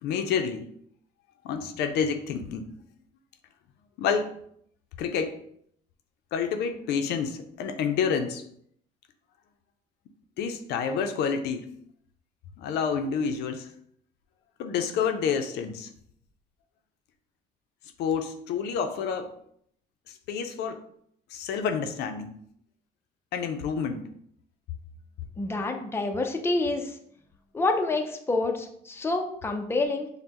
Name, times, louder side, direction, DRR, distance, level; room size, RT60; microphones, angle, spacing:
voice 1, 0.0-0.7 1.4-2.6 4.0-4.3 5.0-5.4 6.3-8.4 10.4-11.7 12.6-13.7 14.6-15.9 18.0-19.3 20.1-20.8 21.3-22.3 23.3-24.1, left 6 dB, 80° left, 7 dB, 0.5 m, -28 dB
voice 2, 25.4-27.0 27.5-30.1, left 2 dB, 15° left, 4 dB, 0.5 m, -27 dB
5.3 x 2.1 x 2.9 m, 0.67 s
cardioid pair, 110°, 17 cm